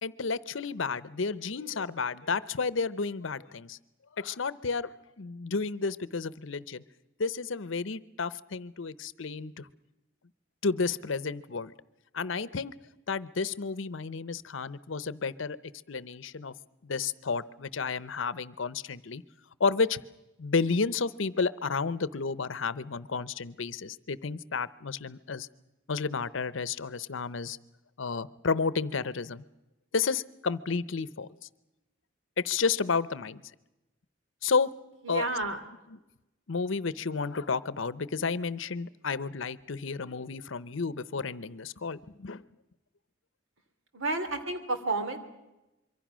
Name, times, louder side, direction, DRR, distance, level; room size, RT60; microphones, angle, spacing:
voice 1, 0.0-3.8 4.2-6.8 7.2-9.7 10.6-11.7 12.1-12.7 13.1-15.6 15.9-16.5 16.8-19.2 19.6-20.0 20.4-25.5 25.9-27.6 28.0-29.4 29.9-31.3 32.4-33.4 34.4-34.7 35.1-35.2 36.5-42.4, left 4 dB, 70° left, 18 dB, 0.7 m, -31 dB
voice 2, 35.0-35.6 43.9-45.2, right 2 dB, 75° right, 7 dB, 2.8 m, -31 dB
25.5 x 23.5 x 6.2 m, 0.98 s
head